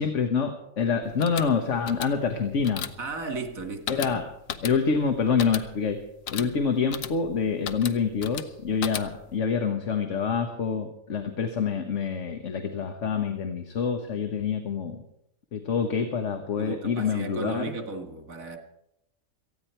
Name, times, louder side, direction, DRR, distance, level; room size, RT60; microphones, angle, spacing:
voice 1, 0.0-2.9 3.9-4.2 4.6-6.0 6.3-15.0 15.5-17.7, left 6 dB, 65° left, 5 dB, 1.5 m, -26 dB
sound 1, 1.0-9.4, left 8 dB, 80° left, 1.2 m, -38 dB
voice 2, 3.0-4.2 16.6-18.6, right 4 dB, 90° right, 5 dB, 2.4 m, -35 dB
18.0 x 14.5 x 4.5 m, 0.79 s
omnidirectional pair, 1.4 m